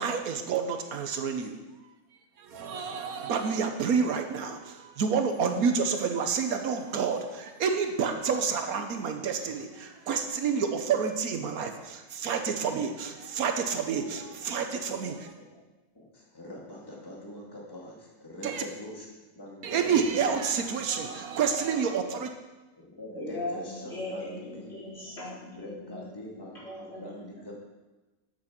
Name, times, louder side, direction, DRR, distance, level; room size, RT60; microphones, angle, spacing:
voice 1, 0.0-1.5 2.4-15.3 18.4-18.6 19.6-22.3, right 6 dB, 80° right, 6 dB, 1.4 m, -29 dB
voice 2, 13.8-14.1 14.9-15.1 15.5-15.6 15.9-20.3 21.1-21.2 22.8-24.8 25.5-27.5, left 1 dB, 15° left, -3 dB, 2.1 m, -44 dB
voice 3, 23.1-27.5, left 2 dB, 45° left, -9 dB, 4.6 m, -39 dB
8.5 x 7.6 x 5.9 m, 1.1 s
omnidirectional pair, 1.5 m